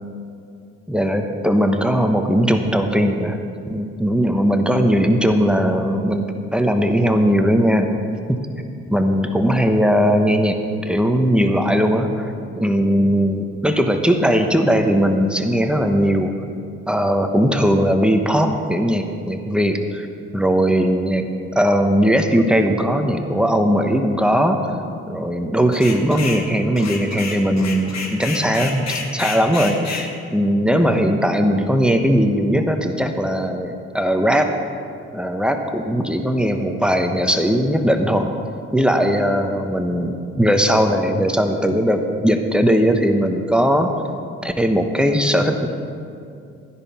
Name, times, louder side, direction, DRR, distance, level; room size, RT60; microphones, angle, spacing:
voice 1, 0.9-3.4 3.7-8.0 8.3-8.4 8.9-12.3 12.6-16.4 16.9-20.1 20.3-21.3 21.5-24.7 25.1-34.5 35.1-38.3 38.7-43.9 44.4-45.7, equal, 5° right, 5 dB, 1.2 m, -19 dB
sound 1, 25.7-26.4 26.8-30.1, left 4 dB, 55° left, 1.5 m, -30 dB
13.0 x 10.5 x 4.3 m, 2.5 s
hypercardioid pair, 45°, 33 cm